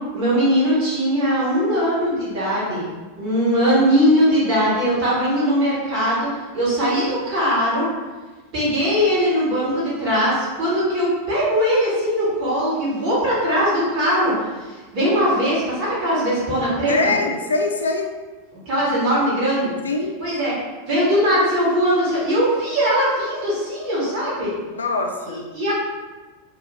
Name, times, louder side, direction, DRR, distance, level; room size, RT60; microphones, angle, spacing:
voice 1, 0.1-2.8 3.2-6.3 6.5-7.8 8.5-14.3 14.9-17.1 18.5-19.7 20.2-20.5 20.9-24.6 25.3-25.7, equal, 40° right, -8 dB, 1.4 m, -20 dB
voice 2, 16.9-18.1 19.8-20.2 24.7-25.4, left 3 dB, 70° left, 3 dB, 0.3 m, -23 dB
2.6 x 2.4 x 3.0 m, 1.3 s
figure-of-eight pair, 90°, 0 cm